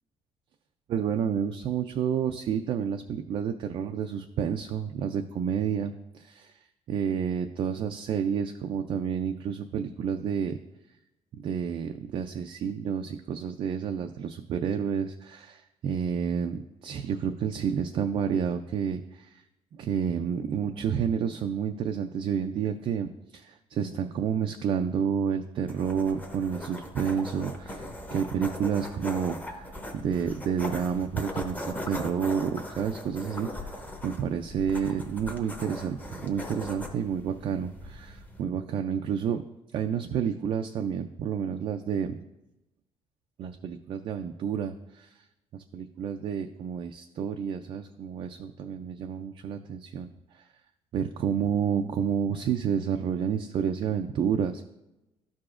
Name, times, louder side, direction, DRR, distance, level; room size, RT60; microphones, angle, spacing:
voice 1, 0.9-6.6 6.9-10.6 11.3-19.4 19.7-33.7 34.0-39.4 39.7-42.2 43.4-45.1 45.5-50.1 50.3-50.4 50.9-54.6, right 7 dB, 50° right, 6 dB, 0.3 m, -30 dB
sound 1, 25.7-38.4, left 1 dB, 15° left, 0.8 m, -40 dB
sound 2, 27.2-27.3 27.7-27.8 28.2-28.4 28.6-28.7 29.3-29.4 30.0-30.1 30.6-30.8 31.3-31.5 31.9-32.0 32.6-32.7 33.4-33.8 34.3-34.4 34.9-35.0 35.4-35.5, left 2 dB, 50° left, 1.7 m, -45 dB
12.5 x 4.8 x 2.4 m, 0.96 s
cardioid pair, 135°, 12 cm